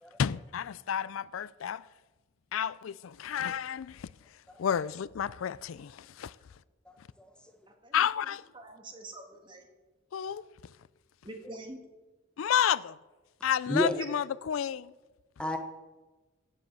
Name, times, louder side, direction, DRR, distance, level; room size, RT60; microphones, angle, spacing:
voice 1, 0.2-1.9 2.5-4.1 4.6-6.4 7.9-8.4 10.1-10.4 12.4-13.0 13.4-14.9, left 8 dB, 85° left, 0.4 m, -31 dB
voice 2, 6.8-7.3 13.7-13.9 15.4-15.6, left 1 dB, 5° left, 0.9 m, -32 dB
voice 3, 8.5-9.7 11.2-11.8 14.0-14.1, right 2 dB, 25° right, 2.1 m, -44 dB
15.5 x 7.7 x 7.6 m
head